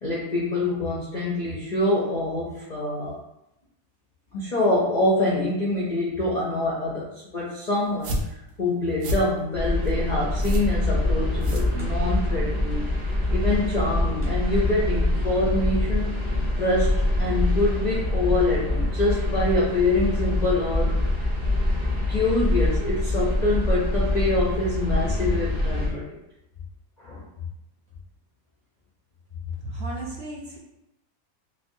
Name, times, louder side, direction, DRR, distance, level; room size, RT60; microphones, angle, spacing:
voice 1, 0.0-3.2 4.3-7.1 7.3-8.3 8.6-12.8 13.3-16.2 16.6-20.9 22.1-26.1 27.0-27.2, left 2 dB, 55° left, -6 dB, 0.5 m, -25 dB
sound 1, 7.8-12.3, equal, 85° right, 1.1 m, -33 dB
sound 2, 9.5-25.9, left 1 dB, 20° right, 0.7 m, -25 dB
voice 2, 29.6-30.6, right 2 dB, 60° right, -4 dB, 0.7 m, -33 dB
3.3 x 3.0 x 2.6 m, 0.86 s
omnidirectional pair, 1.6 m